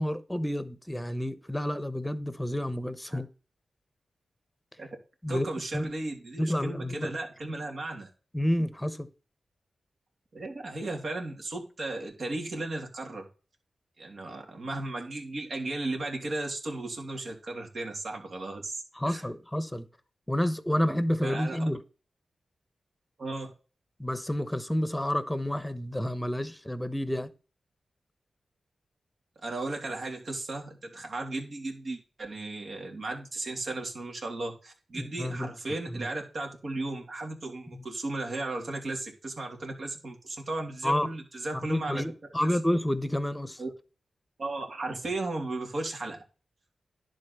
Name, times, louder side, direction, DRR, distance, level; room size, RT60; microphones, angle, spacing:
voice 1, 0.0-3.3 5.2-5.5 5.7-5.9 6.4-7.1 8.3-9.1 19.0-19.9 20.3-21.8 24.0-27.3 35.0-35.5 35.9-36.1 37.7-37.8 40.8-41.1 41.7-43.6, left 1 dB, 10° left, 1.1 m, -29 dB
voice 2, 5.3-8.1 10.3-13.2 14.0-19.3 21.2-21.6 23.2-23.5 29.4-42.0 42.4-42.5 43.6-43.7 44.4-46.2, right 2 dB, 60° right, 3.0 m, -35 dB
10.5 x 3.9 x 6.9 m
cardioid pair, 65°, 0 cm